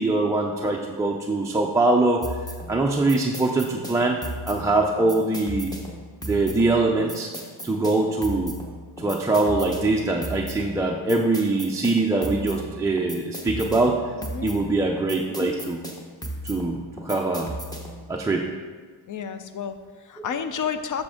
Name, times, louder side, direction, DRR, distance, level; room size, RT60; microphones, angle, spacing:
voice 1, 0.0-2.2 2.7-4.2 4.5-5.7 6.2-7.3 7.6-8.5 9.0-14.0 14.4-15.8 16.4-17.5 18.1-18.5, right 2 dB, 10° right, -1 dB, 0.3 m, -23 dB
sound 1, 2.2-18.1, equal, 10° left, 0.9 m, -36 dB
voice 2, 14.2-14.5 19.1-21.0, left 7 dB, 50° left, 10 dB, 0.5 m, -31 dB
7.6 x 6.4 x 3.5 m, 1.5 s
cardioid pair, 140°, 41 cm